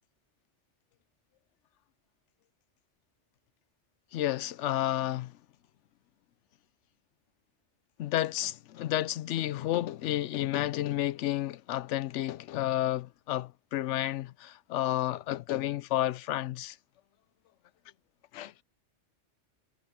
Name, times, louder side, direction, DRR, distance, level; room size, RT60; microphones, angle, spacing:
voice 1, 4.1-5.3 8.0-16.8 18.3-18.6, left 14 dB, 80° left, 0.9 m, -31 dB
omnidirectional pair, 1.2 m